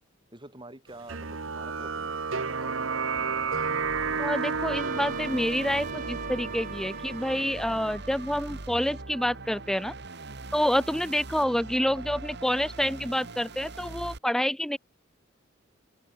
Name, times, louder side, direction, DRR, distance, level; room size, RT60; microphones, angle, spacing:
voice 1, 0.3-3.1, right 2 dB, 25° right, 6.7 m, -47 dB
sound 1, 1.1-8.0, right 4 dB, 85° right, 1.5 m, -32 dB
sound 2, 3.2-14.2, right 3 dB, 60° right, 2.1 m, -42 dB
voice 2, 4.2-9.9 10.5-14.8, equal, ahead, 0.5 m, -28 dB
Trumpet, 4.7-9.2, right 6 dB, 45° right, 3.6 m, -43 dB
open air
head